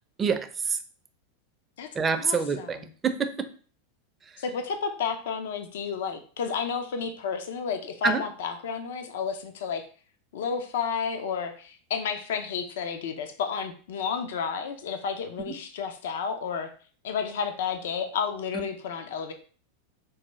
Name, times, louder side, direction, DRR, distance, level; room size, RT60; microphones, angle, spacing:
voice 1, 0.2-0.8 2.0-2.8 3.0-3.5 8.0-8.2 15.5-15.6, right 5 dB, 20° right, 8 dB, 0.4 m, -26 dB
voice 2, 1.8-2.8 4.4-9.8 10.3-16.7 17.0-19.3, left 6 dB, 75° left, 7 dB, 0.5 m, -31 dB
4.5 x 2.2 x 3.0 m, 0.41 s
supercardioid pair, 125°, 0 cm